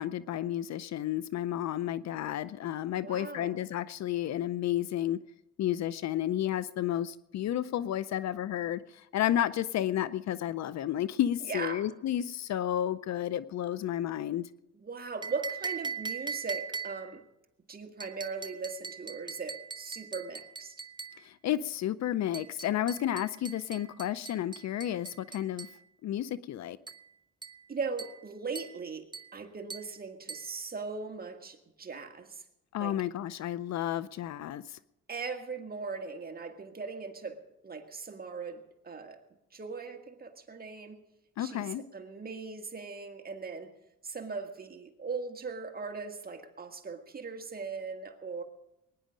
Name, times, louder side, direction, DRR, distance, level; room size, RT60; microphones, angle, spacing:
voice 1, 0.0-5.2 5.6-14.5 21.2-25.7 26.0-26.8 32.7-34.8 41.4-41.8, left 11 dB, 60° left, 17 dB, 0.6 m, -32 dB
voice 2, 3.0-3.5 11.4-11.9 14.7-17.3 17.7-20.7 27.7-32.4 32.8-33.0 35.1-39.2 39.5-41.0 41.4-43.8 44.0-48.4, right 4 dB, 30° right, 5 dB, 1.7 m, -39 dB
sound 1, 15.2-17.2 18.0-21.2 22.3-25.8 26.9-27.1 27.4-27.7 28.0-28.3 28.6-28.8 29.1-29.4 29.7-30.0 30.3-30.5, right 5 dB, 15° right, 0.8 m, -41 dB
21.5 x 10.0 x 5.1 m, 0.86 s
cardioid pair, 90°, 30 cm